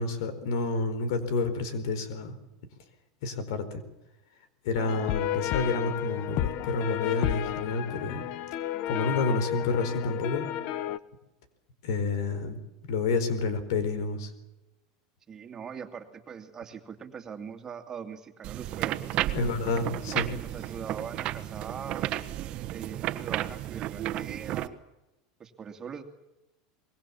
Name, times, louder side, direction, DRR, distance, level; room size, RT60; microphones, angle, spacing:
voice 1, 0.0-2.4 3.2-3.8 4.6-8.2 8.9-10.5 11.8-12.6 12.9-14.3 19.3-20.3, left 3 dB, 75° left, 12 dB, 4.4 m, -29 dB
sound 1, 4.7-11.0, left 12 dB, 55° left, 1.1 m, -32 dB
voice 2, 15.3-19.2 20.1-22.2 22.7-24.7 25.4-26.0, right 7 dB, 25° right, 6 dB, 2.5 m, -41 dB
sound 2, 18.4-24.7, right 14 dB, 45° right, 1.4 m, -33 dB
25.0 x 22.0 x 7.3 m, 0.96 s
supercardioid pair, 125°, 2 cm